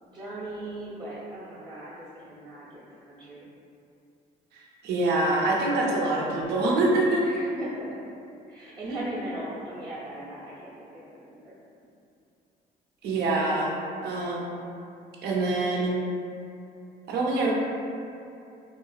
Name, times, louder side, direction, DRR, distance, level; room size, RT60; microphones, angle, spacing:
voice 1, 0.0-3.4 7.2-8.0 8.5-11.5, right 1 dB, 30° right, -12 dB, 0.6 m, -39 dB
voice 2, 4.8-7.4 8.9-9.0 13.0-13.7 14.0-14.5 15.2-15.9 17.1-17.5, right 2 dB, 75° right, -3 dB, 0.5 m, -25 dB
2.8 x 2.3 x 2.2 m, 2.6 s
cardioid pair, 110°, 17 cm